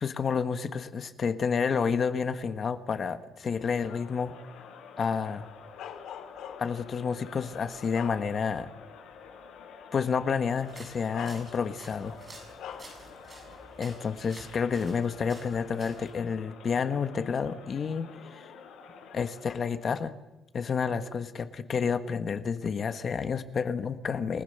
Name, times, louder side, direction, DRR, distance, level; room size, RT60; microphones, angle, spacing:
voice 1, 0.0-4.4 5.0-5.5 6.6-8.7 9.9-12.2 13.8-18.5 19.1-20.1 20.5-24.4, left 6 dB, 30° left, 10 dB, 1.3 m, -30 dB
Crowd, 3.5-19.8, left 5 dB, 85° left, 7.5 m, -49 dB
Bark, 5.8-6.9 7.4-8.7 9.1-9.3 10.4-10.6 11.1-11.9 12.6-13.0, left 9 dB, 65° left, 2.3 m, -43 dB
sound 1, 10.6-16.1, right 2 dB, 20° right, 7.6 m, -51 dB
29.5 x 19.5 x 6.7 m, 0.98 s
cardioid pair, 175°, 0 cm